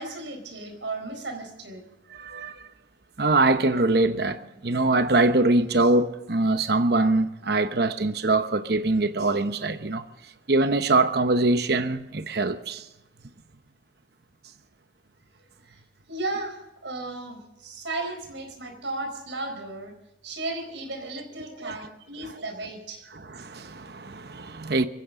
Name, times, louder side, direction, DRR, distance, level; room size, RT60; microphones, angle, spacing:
voice 1, 0.0-1.8 15.7-15.8 16.1-19.9 20.2-23.1, right 2 dB, 80° right, 4.5 m, -35 dB
voice 2, 2.1-2.6 3.2-10.0 10.5-12.8 21.6-21.8 22.2-22.3 23.1-24.9, right 2 dB, 55° right, 1.0 m, -23 dB
24.0 x 16.0 x 3.8 m
head